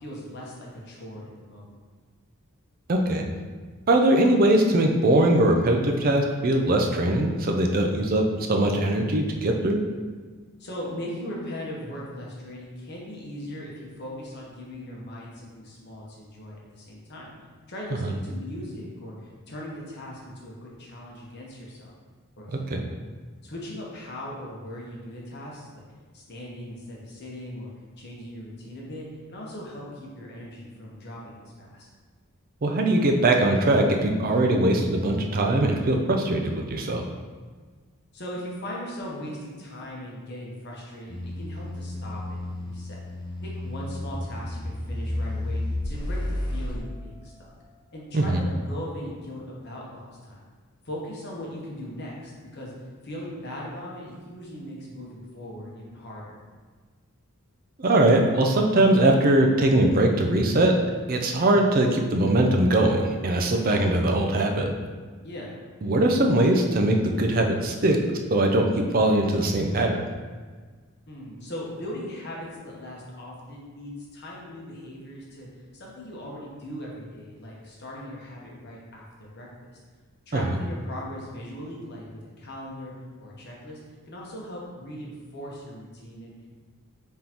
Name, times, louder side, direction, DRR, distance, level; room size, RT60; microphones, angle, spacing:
voice 1, 0.0-1.7 10.6-17.3 17.7-21.9 22.4-22.7 23.4-25.8 26.1-27.7 28.0-31.9 38.1-43.0 43.4-47.5 47.9-50.4 50.8-52.7 53.0-56.4 65.2-65.6 71.1-75.5 75.7-79.5 80.3-82.9 83.2-83.8 84.1-86.5, equal, 50° left, -4 dB, 0.9 m, -39 dB
voice 2, 2.9-3.2 3.9-9.8 18.0-18.1 22.7-22.8 32.6-37.0 48.1-48.4 57.8-60.7 61.1-64.7 65.8-68.7 68.9-70.0 80.3-80.4, right 1 dB, 40° right, 2 dB, 0.4 m, -21 dB
sound 1, 41.1-46.8, left 1 dB, 20° left, 0.4 m, -32 dB
3.8 x 3.6 x 2.9 m, 1.5 s
head